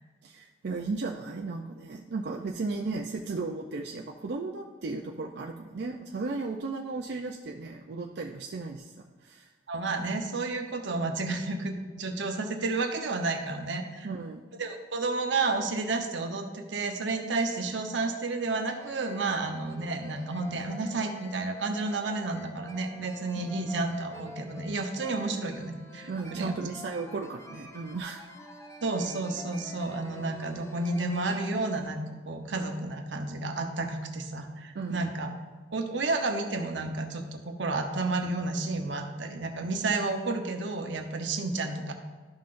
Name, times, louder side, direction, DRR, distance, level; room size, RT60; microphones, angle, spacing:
voice 1, 0.2-8.9 9.2-9.5 14.0-14.4 23.4-23.6 26.0-28.3 34.7-35.0, right 3 dB, 65° right, 0 dB, 0.5 m, -35 dB
voice 2, 9.7-14.1 14.6-26.6 28.8-35.3 35.7-41.9, right 3 dB, 85° right, 4 dB, 0.9 m, -31 dB
sound 1, 17.2-17.3 17.6-17.7 18.1-18.2 18.5-31.8, left 1 dB, 15° left, 0.6 m, -47 dB
12.5 x 5.7 x 2.5 m, 1.4 s
head